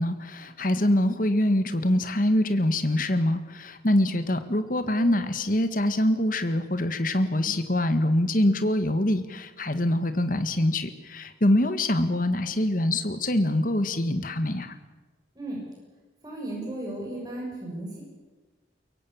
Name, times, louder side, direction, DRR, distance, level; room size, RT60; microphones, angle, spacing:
voice 1, 0.0-14.7, left 1 dB, 45° left, 9 dB, 1.7 m, -24 dB
voice 2, 16.2-18.0, right 1 dB, 20° right, -3 dB, 6.8 m, -35 dB
23.0 x 23.0 x 7.3 m, 1.3 s
head